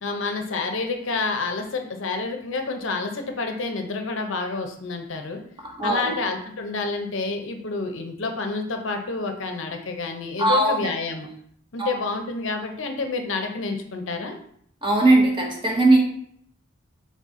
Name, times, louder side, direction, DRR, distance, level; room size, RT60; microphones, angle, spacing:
voice 1, 0.0-5.4 5.8-11.3 11.7-14.4, left 3 dB, 65° left, 5 dB, 0.6 m, -29 dB
voice 2, 5.6-6.2 10.4-10.9 11.8-11.9 14.8-16.0, right 2 dB, 25° right, 0 dB, 0.9 m, -19 dB
4.0 x 3.6 x 3.6 m, 0.66 s
head